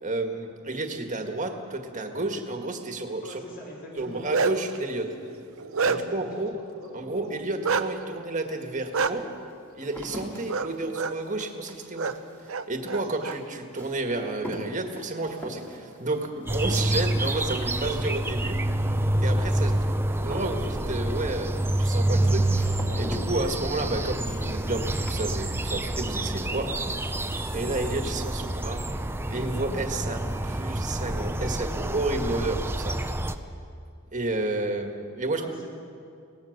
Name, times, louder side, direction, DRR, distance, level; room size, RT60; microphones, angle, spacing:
voice 1, 0.0-3.3 4.0-5.1 5.8-6.5 6.9-9.3 9.7-12.1 12.7-18.6 19.2-19.9 20.2-21.5 21.8-22.5 23.0-26.7 27.5-28.8 29.3-33.0 34.1-35.4, right 2 dB, 35° right, 4 dB, 1.8 m, -31 dB
voice 2, 3.2-4.2 5.8-6.9 35.3-35.7, equal, 45° left, -3 dB, 6.0 m, -43 dB
Bark, 4.0-4.8 5.3-6.3 7.6-7.9 8.9-9.1 10.5-10.7 10.9-11.1 12.0-12.1 12.5-13.3, right 5 dB, 70° right, 0.9 m, -26 dB
sound 1, 8.0-8.1 8.8-25.9 26.2-26.8, equal, 10° left, 2.8 m, -44 dB
sound 2, 16.5-33.4, right 1 dB, 10° right, 0.7 m, -27 dB
23.5 x 18.0 x 6.6 m, 2.4 s
head